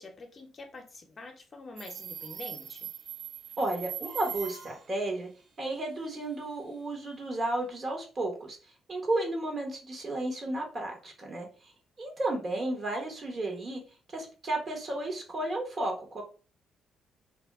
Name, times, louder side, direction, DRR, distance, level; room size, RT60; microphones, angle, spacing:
voice 1, 0.0-2.9, left 3 dB, 40° left, 3 dB, 0.7 m, -46 dB
Subway metro underground, 1.8-4.9, right 9 dB, 70° right, 0.6 m, -41 dB
voice 2, 3.6-5.3 5.6-8.6 8.9-11.7 12.0-13.8 14.1-16.2, right 2 dB, 40° right, 2 dB, 1.1 m, -33 dB
2.7 x 2.1 x 3.5 m, 0.36 s
cardioid pair, 90°, 0 cm